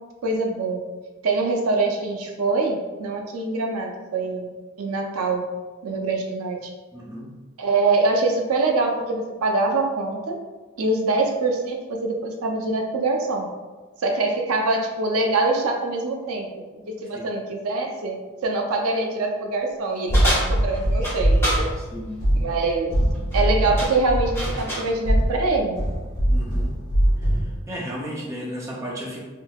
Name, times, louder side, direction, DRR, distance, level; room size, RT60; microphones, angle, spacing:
voice 1, 0.2-0.8 1.2-5.4 5.8-6.7 7.6-10.4 10.8-13.5 14.0-16.5 17.0-21.7 22.3-22.9 23.3-25.8, right 3 dB, 90° right, 2 dB, 0.5 m, -24 dB
voice 2, 6.9-7.3 17.1-17.4 21.8-22.2 26.3-26.8 27.2-29.2, equal, 15° right, -4 dB, 0.4 m, -34 dB
sound 1, 20.1-27.6, equal, 40° left, 0.8 m, -22 dB
sound 2, 20.1-21.7 23.1-23.4 23.8-24.9, equal, 10° left, 0.9 m, -28 dB
3.7 x 2.7 x 2.3 m, 1.3 s
head